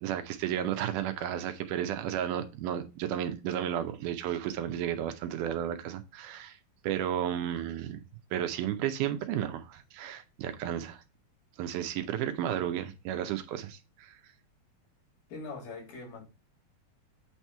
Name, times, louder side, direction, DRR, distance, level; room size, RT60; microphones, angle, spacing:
voice 1, 0.0-6.6 6.8-11.0 11.6-14.2, right 10 dB, 80° right, 1.9 m, -33 dB
voice 2, 15.3-16.2, left 3 dB, 90° left, 4.2 m, -42 dB
8.6 x 2.9 x 4.5 m
omnidirectional pair, 4.1 m